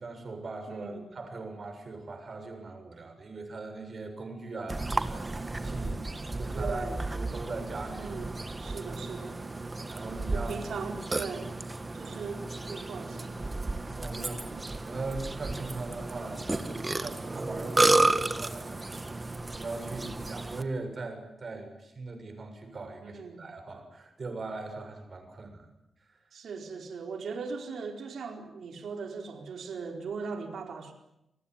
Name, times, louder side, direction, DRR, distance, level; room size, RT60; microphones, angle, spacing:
voice 1, 0.0-6.0 6.4-8.1 8.6-8.8 9.9-10.5 13.9-18.8 19.2-25.7 26.1-26.2, right 3 dB, 45° right, 6 dB, 7.0 m, -40 dB
voice 2, 0.7-1.0 6.5-7.0 8.0-8.3 8.6-9.4 10.3-11.5 11.9-13.4 14.2-14.3 23.0-23.4 26.3-30.9, right 5 dB, 80° right, 4 dB, 4.5 m, -39 dB
Burping eructation, 4.7-20.6, right 2 dB, 20° right, 1.7 m, -32 dB
28.5 x 19.5 x 9.7 m, 0.86 s
wide cardioid pair, 110°, 0 cm